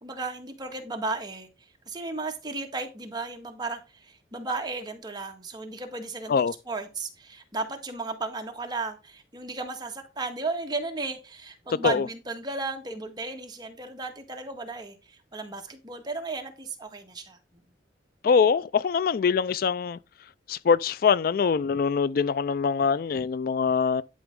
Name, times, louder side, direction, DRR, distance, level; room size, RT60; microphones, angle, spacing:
voice 1, 0.0-1.5 1.9-17.4, right 3 dB, 25° right, 1.6 m, -34 dB
voice 2, 18.2-20.0 20.5-24.0, left 6 dB, 50° left, 0.3 m, -23 dB
11.0 x 5.1 x 3.6 m
head